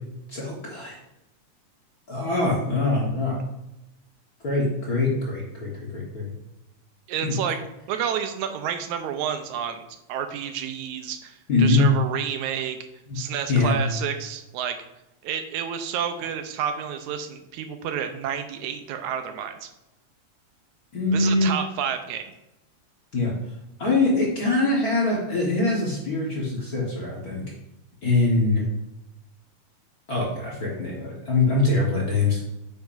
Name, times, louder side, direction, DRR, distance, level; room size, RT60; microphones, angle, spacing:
voice 1, 0.3-1.0 2.1-3.4 4.4-6.3 7.2-7.3 11.5-11.9 13.1-13.2 13.5-13.7 20.9-21.5 23.1-23.3 23.8-27.4 28.0-28.6 30.1-32.4, left 3 dB, 40° left, -4 dB, 1.4 m, -23 dB
voice 2, 7.1-7.6 7.9-12.8 13.1-14.8 15.2-19.7 21.1-22.3, right 8 dB, 85° right, 7 dB, 2.1 m, -30 dB
9.3 x 7.1 x 2.6 m, 0.93 s
omnidirectional pair, 3.3 m